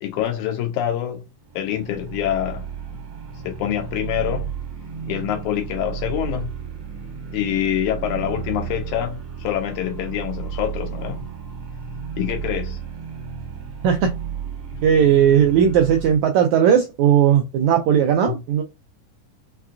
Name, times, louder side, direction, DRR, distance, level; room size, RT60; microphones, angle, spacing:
voice 1, 0.0-1.2 1.6-2.7 3.4-4.5 5.1-6.5 7.3-11.2 12.2-12.8 14.7-14.9 18.3-18.4, left 11 dB, 80° left, 1.8 m, -25 dB
sound 1, 1.4-16.2, right 7 dB, 60° right, 1.5 m, -33 dB
voice 2, 14.8-18.6, right 8 dB, 85° right, 1.6 m, -17 dB
5.6 x 2.3 x 2.4 m
omnidirectional pair, 3.8 m